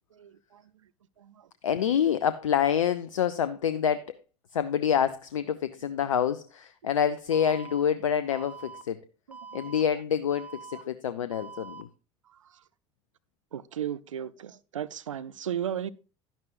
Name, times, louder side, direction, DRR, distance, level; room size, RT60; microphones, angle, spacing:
voice 1, 0.1-0.6 1.2-1.5 9.3-9.7 12.3-12.5 13.5-15.9, right 9 dB, 90° right, 0.4 m, -36 dB
voice 2, 1.6-4.2 4.5-9.0 9.5-11.9, left 8 dB, 85° left, 0.4 m, -27 dB
Alarm, 7.3-7.8 8.3-8.8 9.3-9.8 10.3-10.8 11.3-11.8, right 5 dB, 10° right, 1.2 m, -44 dB
11.0 x 10.5 x 2.5 m
hypercardioid pair, 65°, 16 cm